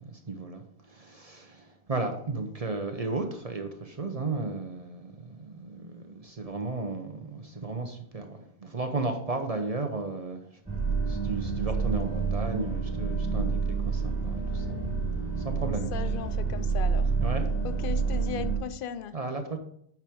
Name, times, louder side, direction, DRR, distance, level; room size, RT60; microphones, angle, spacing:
voice 1, 0.0-10.6 11.1-15.1 15.4-15.9 17.2-17.5 19.1-19.6, right 3 dB, 40° right, 0.8 m, -34 dB
sound 1, 10.7-18.6, right 4 dB, 5° right, 2.4 m, -28 dB
voice 2, 15.9-17.1 17.6-19.1, left 8 dB, 60° left, 0.7 m, -37 dB
8.6 x 6.0 x 3.5 m
omnidirectional pair, 1.1 m